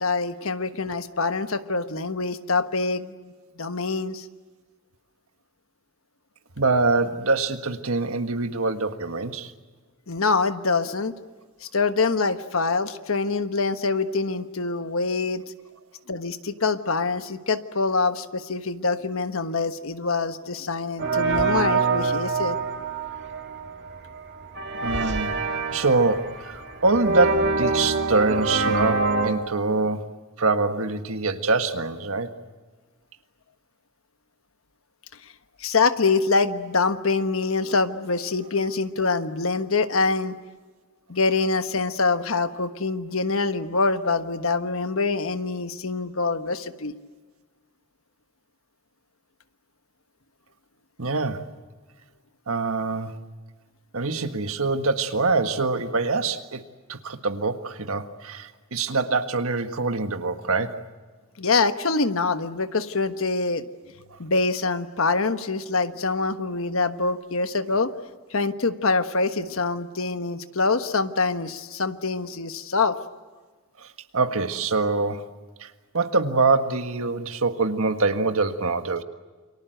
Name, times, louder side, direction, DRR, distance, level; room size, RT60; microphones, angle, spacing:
voice 1, 0.0-3.2 3.6-4.3 10.1-11.1 11.6-15.4 16.1-22.6 35.6-40.4 41.1-46.9 61.4-63.6 64.2-67.9 68.3-73.0, left 4 dB, 65° left, 9 dB, 1.3 m, -25 dB
voice 2, 6.6-9.5 24.8-25.4 25.7-30.1 30.4-32.3 51.0-51.5 52.5-53.2 53.9-56.6 56.9-60.8 64.1-64.2 73.8-73.9 74.1-75.2 75.6-79.0, right 3 dB, 70° right, 8 dB, 1.6 m, -24 dB
sound 1, 21.0-29.3, right 4 dB, 50° right, 2.3 m, -26 dB
29.0 x 24.5 x 7.9 m, 1.4 s
head